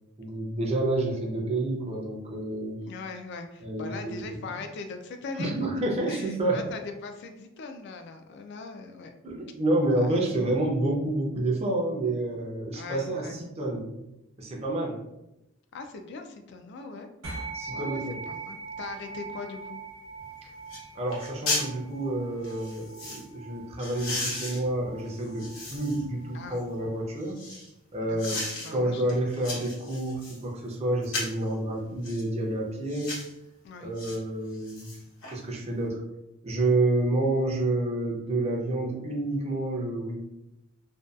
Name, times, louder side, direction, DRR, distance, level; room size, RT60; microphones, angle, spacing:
voice 1, 0.2-2.8 3.6-4.4 5.4-6.6 9.2-14.0 14.4-15.0 17.5-18.2 20.9-27.4 27.9-28.4 28.7-33.1 33.8-34.9 35.3-36.0 36.4-40.2, right 2 dB, 30° right, -1 dB, 0.5 m, -29 dB
voice 2, 2.9-5.5 6.1-9.1 10.0-10.1 12.7-13.4 15.7-17.1 17.7-19.8 26.3-26.6 28.0-29.0 29.4-29.6 33.6-33.9, left 4 dB, 55° left, 6 dB, 0.3 m, -40 dB
sound 1, 17.2-26.9, right 4 dB, 75° right, 0.8 m, -42 dB
sound 2, 20.2-20.3 20.7-20.8 21.1-21.7 22.4-23.2 23.8-26.1 26.6-27.7 28.2-28.7 29.1-30.4 31.0-31.4 32.0-32.3 32.9-33.3 34.0-34.2 34.5-35.3 35.7-35.8, left 2 dB, 90° left, 0.9 m, -35 dB
2.6 x 2.2 x 2.3 m, 0.89 s
head